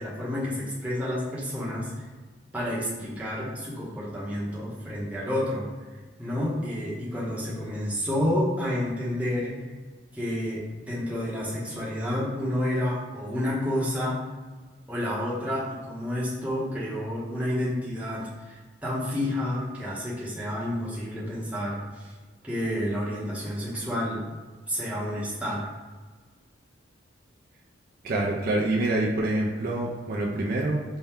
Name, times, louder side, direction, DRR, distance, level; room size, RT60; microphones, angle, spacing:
voice 1, 0.0-1.9 2.5-5.6 6.2-9.5 10.1-14.2 14.9-22.1 22.4-24.2 24.7-25.7, left 1 dB, 5° right, -7 dB, 0.8 m, -30 dB
voice 2, 28.0-30.8, right 2 dB, 50° right, -3 dB, 0.5 m, -26 dB
4.2 x 2.2 x 3.6 m, 1.4 s
head